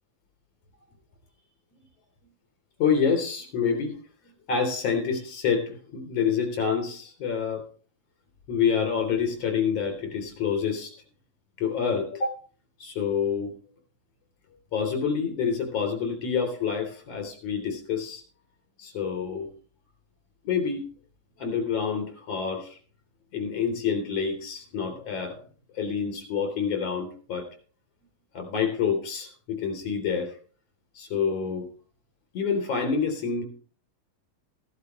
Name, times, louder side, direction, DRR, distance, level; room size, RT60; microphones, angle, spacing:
voice 1, 2.8-4.0 4.5-7.7 8.5-10.9 11.6-12.3 12.8-13.6 14.7-18.2 18.8-19.5 20.4-20.9 21.4-22.8 23.3-25.4 25.7-27.5 28.3-30.4 31.0-31.7 32.3-33.4, left 6 dB, 45° left, 2 dB, 4.4 m, -27 dB
16.5 x 11.5 x 3.2 m, 0.40 s
omnidirectional pair, 4.2 m